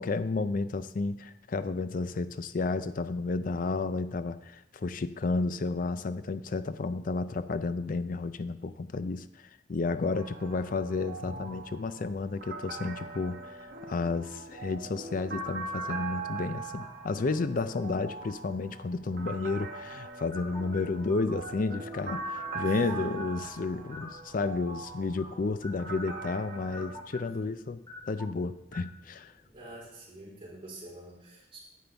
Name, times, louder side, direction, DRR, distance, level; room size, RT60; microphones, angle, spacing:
voice 1, 0.0-27.8 28.1-29.3, left 3 dB, 50° left, 13 dB, 0.4 m, -32 dB
sound 1, 10.1-27.0, right 4 dB, 60° right, 1.2 m, -41 dB
sound 2, 20.3-29.8, left 2 dB, 20° left, 1.9 m, -49 dB
voice 2, 22.6-23.0 27.2-27.6 29.5-31.6, right 1 dB, 30° right, -6 dB, 4.0 m, -47 dB
9.2 x 8.5 x 3.4 m, 0.83 s
head